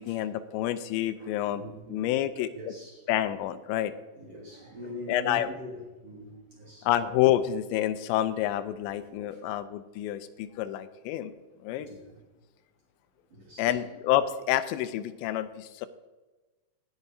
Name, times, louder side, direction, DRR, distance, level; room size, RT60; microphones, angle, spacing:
voice 1, 0.0-1.6 1.9-2.5 3.1-3.9 5.1-5.5 6.8-11.3 11.6-11.9 13.6-15.9, left 12 dB, 90° left, 12 dB, 2.9 m, -28 dB
voice 2, 1.2-2.2 2.5-3.0 4.2-6.9 9.3-9.4 11.8-12.2 13.3-13.8, equal, 50° right, -3 dB, 2.0 m, -43 dB
18.0 x 8.0 x 2.7 m, 1.2 s
omnidirectional pair, 5.0 m